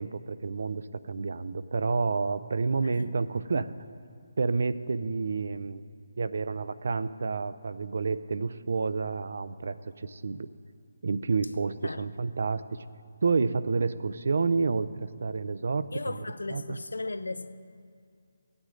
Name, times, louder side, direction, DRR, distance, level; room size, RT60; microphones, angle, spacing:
voice 1, 0.0-3.7 4.4-5.8 6.2-10.5 11.0-12.8 13.2-16.8, right 4 dB, 65° right, 0.5 m, -29 dB
voice 2, 15.9-17.5, left 2 dB, 85° left, 0.6 m, -35 dB
16.0 x 9.5 x 3.8 m
figure-of-eight pair, 155°, 0 cm